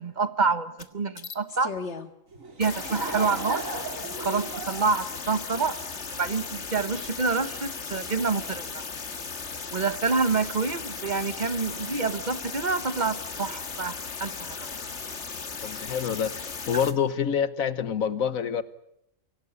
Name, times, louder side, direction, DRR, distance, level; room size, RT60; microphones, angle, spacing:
voice 1, 0.0-1.7 2.6-3.6 4.2-5.8 6.2-8.8 9.7-14.8, right 4 dB, 35° right, 12 dB, 1.4 m, -27 dB
sound 1, 0.8-0.9 1.2-2.1 2.6-16.9, left 5 dB, 60° left, 1.9 m, -36 dB
Laughter / Crowd, 2.3-6.1, right 3 dB, 75° right, 4.0 m, -36 dB
voice 2, 15.6-18.6, left 7 dB, 85° left, 14 dB, 1.6 m, -27 dB
25.5 x 17.0 x 9.7 m, 0.79 s
omnidirectional pair, 1.4 m